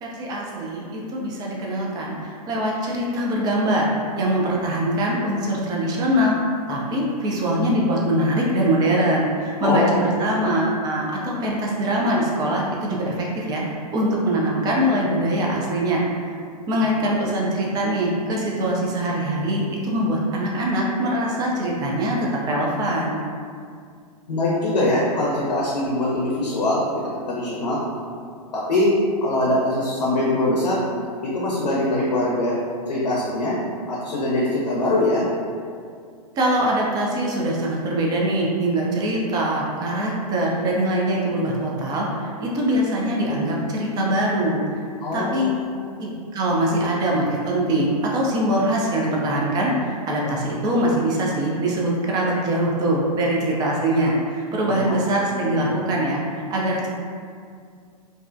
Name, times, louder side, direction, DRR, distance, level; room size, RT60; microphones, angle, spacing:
voice 1, 0.0-3.8 4.2-6.3 6.7-13.6 13.9-16.3 16.7-22.2 22.5-23.2 36.4-44.8 45.1-45.6 46.0-56.9, right 1 dB, 20° right, -3 dB, 0.4 m, -23 dB
voice 2, 9.6-10.5 17.0-17.3 24.3-26.8 27.3-27.8 28.5-28.9 29.2-30.8 31.2-32.5 32.9-33.6 33.9-35.2 45.0-45.7 54.7-55.0 55.3-55.5, left 1 dB, 85° left, -6 dB, 0.5 m, -23 dB
2.4 x 2.1 x 2.4 m, 2.2 s
hypercardioid pair, 115°, 20 cm